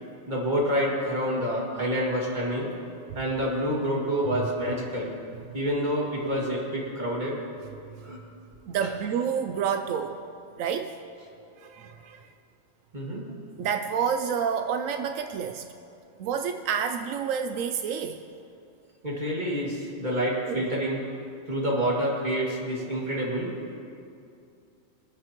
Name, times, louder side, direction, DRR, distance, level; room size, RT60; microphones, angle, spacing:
voice 1, 0.3-2.7 3.1-5.1 5.5-7.4 8.0-8.2 12.9-13.3 19.0-21.0 21.5-23.5, equal, 35° right, -4 dB, 2.4 m, -28 dB
voice 2, 8.7-10.1 10.6-10.9 11.6-12.3 13.6-15.7 16.2-18.2 20.4-20.7, right 7 dB, 90° right, 7 dB, 1.0 m, -29 dB
22.5 x 9.2 x 3.0 m, 2.6 s
omnidirectional pair, 1.3 m